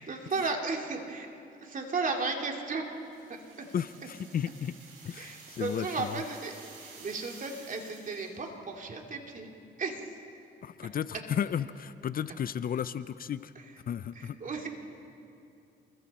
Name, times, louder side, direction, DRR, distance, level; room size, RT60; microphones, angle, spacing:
voice 1, 0.1-1.3 1.6-2.8 3.6-3.7 5.2-6.5 6.8-9.5 9.8-10.1 14.1-14.7, right 4 dB, 40° right, 2 dB, 2.7 m, -34 dB
sound 1, 2.9-8.5, right 4 dB, 80° right, 7.1 m, -51 dB
voice 2, 3.7-4.8 5.0-6.2 10.6-13.5 13.9-14.4, left 8 dB, 45° left, 14 dB, 0.5 m, -34 dB
28.5 x 22.0 x 4.3 m, 2.6 s
cardioid pair, 90°, 20 cm